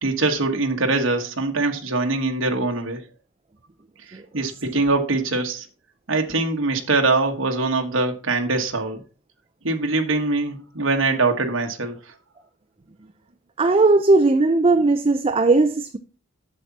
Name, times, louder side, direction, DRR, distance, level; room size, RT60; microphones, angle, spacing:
voice 1, 0.0-3.0 4.1-5.7 6.1-9.0 9.6-12.0, right 3 dB, 70° right, 1.3 m, -23 dB
voice 2, 13.6-16.0, right 3 dB, 30° right, 0.5 m, -17 dB
7.7 x 7.2 x 4.1 m
head